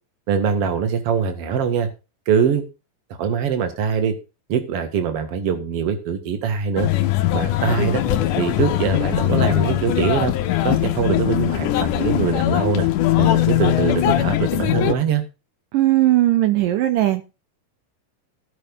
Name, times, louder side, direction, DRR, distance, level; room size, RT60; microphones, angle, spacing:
voice 1, 0.3-1.9 2.3-2.6 3.2-4.2 4.5-6.9 7.3-8.0 8.4-10.3 10.6-12.9 13.2-15.2, right 7 dB, 50° right, 2.3 m, -22 dB
sound 1, 6.8-14.9, left 13 dB, 75° left, 2.2 m, -20 dB
voice 2, 15.7-17.2, right 15 dB, 75° right, 2.4 m, -18 dB
15.5 x 5.6 x 5.3 m
omnidirectional pair, 4.0 m